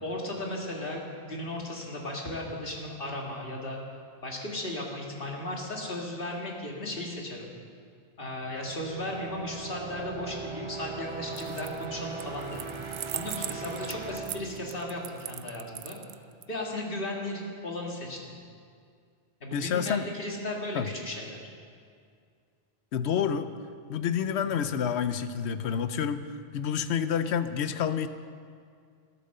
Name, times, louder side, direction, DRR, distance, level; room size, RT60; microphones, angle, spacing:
voice 1, 0.0-3.8 4.2-7.5 8.2-12.7 13.1-16.0 16.5-18.4 19.4-21.5, left 1 dB, 55° left, -1 dB, 2.4 m, -36 dB
sound 1, 8.3-16.0, right 4 dB, 30° right, 0.9 m, -40 dB
sound 2, 11.3-11.9 12.2-16.4, right 12 dB, 80° right, 0.8 m, -39 dB
voice 2, 19.5-20.0 20.7-20.9 22.9-23.5 23.9-26.2 26.5-28.1, left 8 dB, 85° left, 11 dB, 1.0 m, -28 dB
13.5 x 12.0 x 6.6 m, 2.2 s
omnidirectional pair, 1.1 m